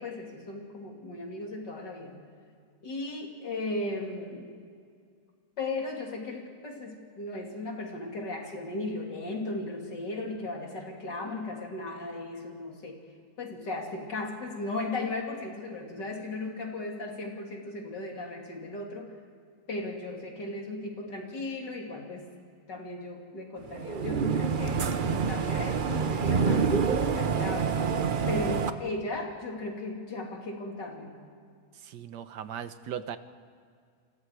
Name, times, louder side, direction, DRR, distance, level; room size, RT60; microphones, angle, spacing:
voice 1, 0.0-2.2 2.8-4.5 5.6-13.0 13.4-19.2 19.7-22.3 22.7-26.9 27.2-31.1, left 2 dB, 75° left, 1 dB, 3.5 m, -36 dB
sound 1, 23.7-28.7, right 6 dB, 40° right, 0.7 m, -27 dB
voice 2, 31.7-33.2, right 9 dB, 75° right, 11 dB, 1.6 m, -38 dB
29.5 x 25.0 x 4.8 m, 2.2 s
omnidirectional pair, 1.9 m